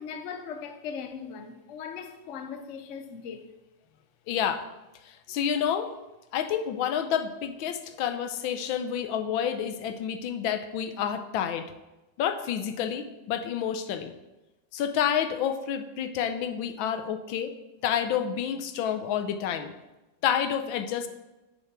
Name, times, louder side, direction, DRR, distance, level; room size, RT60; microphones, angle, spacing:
voice 1, 0.0-3.5, left 6 dB, 55° left, 0.9 m, -39 dB
voice 2, 4.3-4.7 5.3-5.9 6.3-11.7 12.2-14.1 14.7-17.5 17.8-19.7 20.2-21.1, left 8 dB, 85° left, 1.5 m, -29 dB
7.0 x 6.8 x 5.9 m
omnidirectional pair, 2.1 m